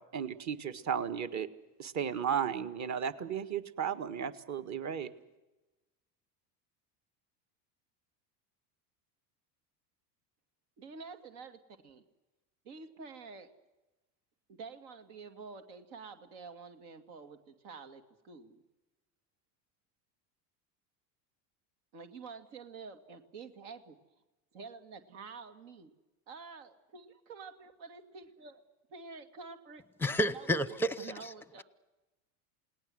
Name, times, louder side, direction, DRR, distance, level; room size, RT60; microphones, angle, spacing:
voice 1, 0.0-1.5 1.8-5.1, right 8 dB, 35° right, 1.7 m, -34 dB
voice 2, 10.8-12.0 12.6-13.5 14.5-18.6 21.9-24.0 24.5-25.9 26.3-28.6 28.9-29.8 30.2-31.6, right 5 dB, 70° right, 2.5 m, -49 dB
voice 3, 30.0-30.6, left 1 dB, 5° left, 0.8 m, -28 dB
28.5 x 19.0 x 7.9 m
supercardioid pair, 105°, 47 cm